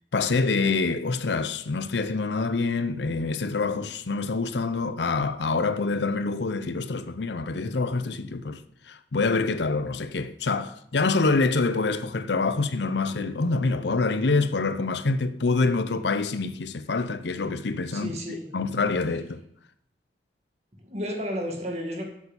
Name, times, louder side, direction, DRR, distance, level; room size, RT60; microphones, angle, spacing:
voice 1, 0.1-8.6 8.9-19.4, left 3 dB, 80° left, 0.7 m, -26 dB
voice 2, 17.9-18.5 20.8-22.0, equal, 40° right, 1.9 m, -32 dB
8.3 x 7.1 x 6.9 m
head